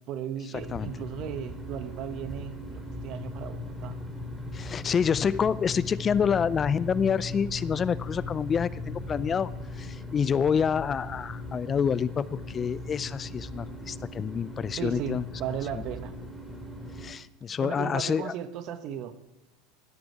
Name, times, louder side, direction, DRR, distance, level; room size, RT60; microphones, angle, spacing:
voice 1, 0.1-4.0 14.8-16.1 17.6-19.1, right 9 dB, 55° right, 11 dB, 1.2 m, -36 dB
sound 1, 0.5-17.1, left 2 dB, 5° right, 3.0 m, -38 dB
voice 2, 4.5-15.2 17.0-18.3, left 7 dB, 30° left, 19 dB, 0.4 m, -27 dB
17.5 x 8.0 x 4.6 m, 1.0 s
hypercardioid pair, 90°, 0 cm